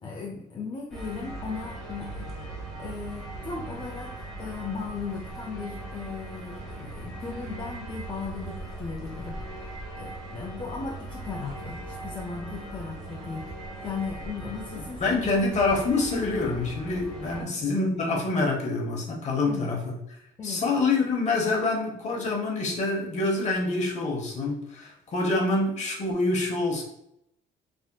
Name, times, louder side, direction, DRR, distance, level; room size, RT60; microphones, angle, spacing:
voice 1, 0.0-2.3 2.8-13.5 13.8-15.3 17.3-17.7 19.5-19.7 20.4-20.6, left 5 dB, 30° left, -2 dB, 0.4 m, -37 dB
sound 1, 0.9-17.4, right 2 dB, ahead, 1.1 m, -39 dB
voice 2, 15.0-20.0 20.4-26.8, left 3 dB, 45° left, 0 dB, 0.9 m, -26 dB
3.4 x 2.5 x 2.2 m, 0.76 s
cardioid pair, 110°, 17 cm